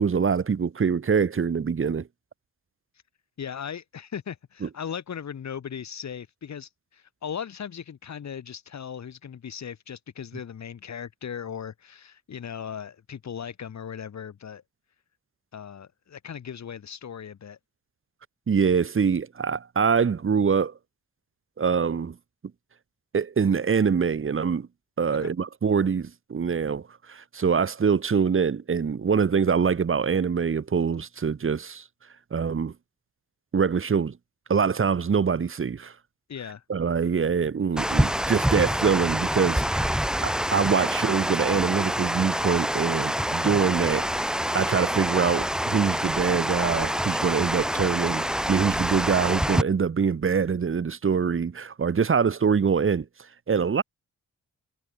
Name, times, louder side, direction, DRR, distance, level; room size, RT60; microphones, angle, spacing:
voice 1, 0.0-2.1 4.6-4.7 18.5-20.7 21.6-22.2 23.1-24.7 25.0-26.8 27.1-31.8 32.3-32.7 33.5-34.1 34.5-35.9 36.7-39.9 40.2-44.3 44.5-53.1 53.5-53.8, right 6 dB, 40° right, 3.7 m, -24 dB
voice 2, 3.4-14.6 15.5-17.6 25.2-25.3 36.3-36.6, left 8 dB, 60° left, 5.7 m, -38 dB
Water, 37.8-49.6, equal, ahead, 3.1 m, -26 dB
wide cardioid pair, 150°, 31 cm